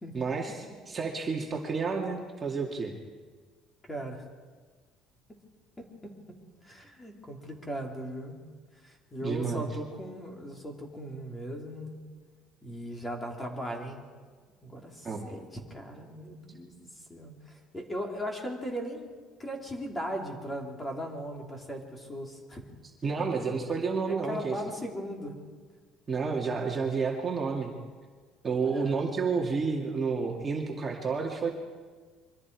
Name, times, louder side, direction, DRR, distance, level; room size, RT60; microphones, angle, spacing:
voice 1, 0.1-2.9 9.2-9.6 15.0-15.3 23.0-24.6 26.1-27.7 28.4-31.5, right 5 dB, 25° right, -1 dB, 2.4 m, -30 dB
voice 2, 3.9-4.2 6.0-6.1 6.6-8.4 8.8-11.9 12.6-14.0 14.6-15.4 15.7-19.1 19.4-22.6 24.0-25.4 28.6-29.0, equal, 15° left, 1 dB, 3.6 m, -38 dB
27.0 x 24.0 x 4.9 m, 1.5 s
cardioid pair, 140°, 0 cm